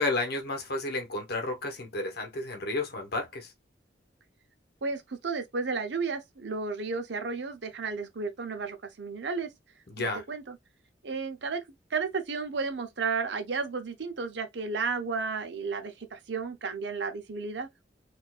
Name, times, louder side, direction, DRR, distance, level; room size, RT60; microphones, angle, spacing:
voice 1, 0.0-3.5 9.9-10.2, left 2 dB, 65° left, 1.0 m, -31 dB
voice 2, 4.8-9.5 10.0-10.6 11.0-11.6 11.9-17.7, right 4 dB, 70° right, 0.7 m, -33 dB
4.2 x 2.5 x 2.3 m
head